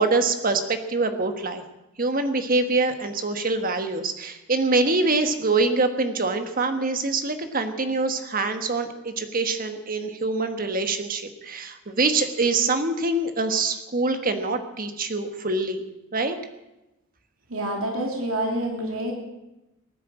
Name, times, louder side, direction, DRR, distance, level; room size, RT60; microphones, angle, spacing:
voice 1, 0.0-1.6 2.0-15.8 16.1-16.4, right 3 dB, 40° right, 7 dB, 1.4 m, -24 dB
voice 2, 17.5-19.1, right 1 dB, 70° right, 1 dB, 2.9 m, -27 dB
18.0 x 10.0 x 7.7 m, 0.95 s
head